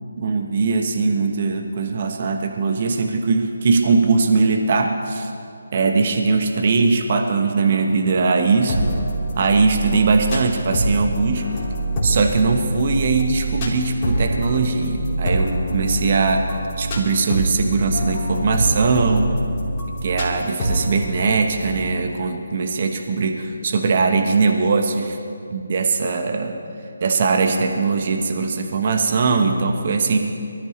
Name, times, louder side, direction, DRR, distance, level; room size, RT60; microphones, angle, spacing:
voice 1, 0.2-5.3 5.7-8.9 9.4-11.4 12.0-16.4 16.8-19.3 20.0-25.2 25.5-26.6 27.0-30.2, right 4 dB, 45° right, 4 dB, 1.2 m, -20 dB
sound 1, 8.7-21.8, right 1 dB, 25° left, 3.9 m, -25 dB
24.5 x 14.0 x 3.3 m, 2.5 s
figure-of-eight pair, 150°, 0 cm